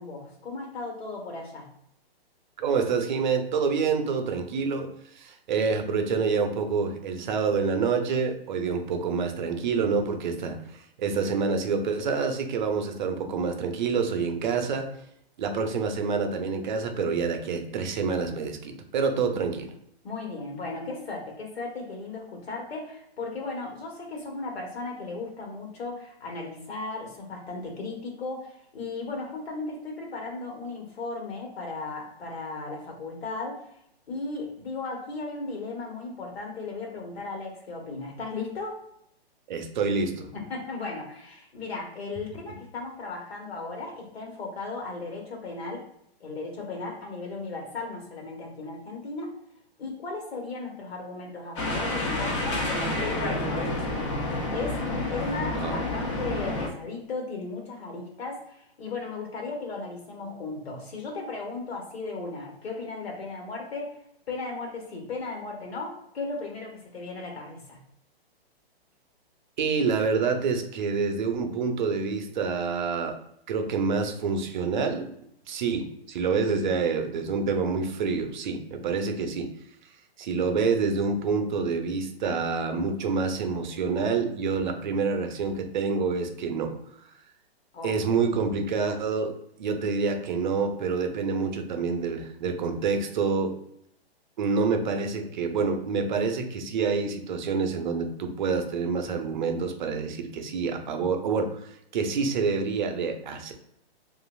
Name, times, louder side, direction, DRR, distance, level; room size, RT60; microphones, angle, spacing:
voice 1, 0.0-1.7 20.0-33.7 34.1-38.8 40.3-45.9 46.2-49.4 49.8-54.0 54.5-64.0 64.3-67.8 87.7-88.2, left 3 dB, 75° left, 0 dB, 1.2 m, -36 dB
voice 2, 2.6-14.9 15.4-19.7 39.5-40.3 55.5-55.9 69.6-73.2 73.5-75.1 75.5-79.5 80.2-86.7 87.8-89.3 89.6-93.5 94.4-103.5, right 5 dB, 50° right, 5 dB, 0.5 m, -27 dB
sound 1, 51.6-56.7, left 2 dB, 30° left, 0.5 m, -29 dB
3.0 x 2.4 x 2.3 m, 0.75 s
hypercardioid pair, 150°, 31 cm